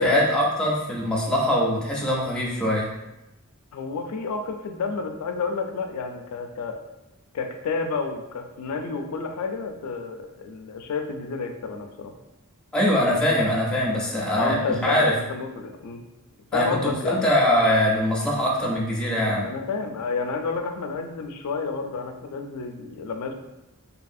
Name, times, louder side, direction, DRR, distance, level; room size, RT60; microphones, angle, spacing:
voice 1, 0.0-2.9 12.7-15.1 16.5-19.5, equal, 5° left, -5 dB, 0.5 m, -22 dB
voice 2, 3.7-6.8 7.3-12.1 14.3-16.0 16.5-17.3 19.4-23.3, left 4 dB, 90° left, 5 dB, 0.3 m, -30 dB
2.7 x 2.3 x 2.6 m, 0.94 s
head